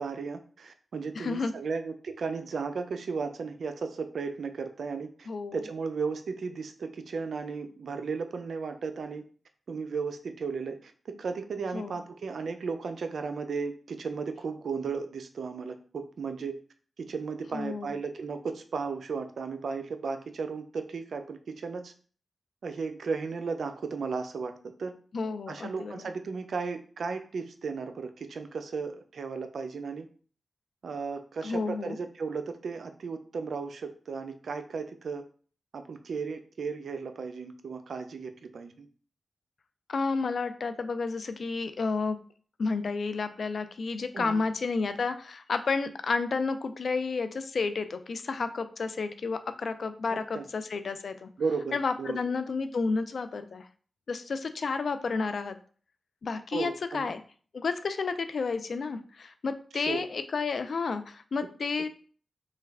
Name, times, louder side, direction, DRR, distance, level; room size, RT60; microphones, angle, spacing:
voice 1, 0.0-9.2 9.7-16.6 17.0-21.9 22.6-24.5 24.8-25.0 25.5-30.1 30.8-35.2 35.7-38.9 44.1-44.4 50.1-50.4 51.4-52.2 56.5-57.1 59.7-60.0, right 5 dB, 75° right, 8 dB, 0.4 m, -35 dB
voice 2, 1.2-1.5 5.3-5.6 11.7-12.0 17.5-17.9 25.1-26.1 31.4-32.0 39.9-42.2 42.6-51.3 51.7-53.7 54.1-55.6 56.2-57.2 57.5-61.9, left 4 dB, 70° left, 10 dB, 0.3 m, -31 dB
3.2 x 2.2 x 3.4 m, 0.42 s
cardioid pair, 55°, 0 cm